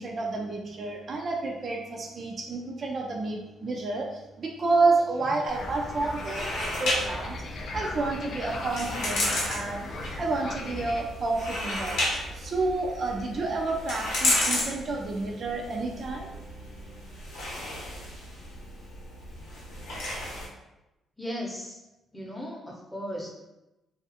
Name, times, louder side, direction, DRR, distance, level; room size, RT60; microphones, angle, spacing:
voice 1, 0.0-9.9 10.2-12.0 12.3-16.4, right 3 dB, 50° right, 0 dB, 0.3 m, -30 dB
sound 1, 5.5-20.5, left 1 dB, 85° left, 0.7 m, -33 dB
sound 2, 5.5-11.0, left 2 dB, 55° left, 0.3 m, -38 dB
voice 2, 21.2-21.8 22.1-23.4, equal, 5° left, -3 dB, 0.7 m, -36 dB
2.4 x 2.3 x 2.6 m, 0.98 s
cardioid pair, 90°, 0 cm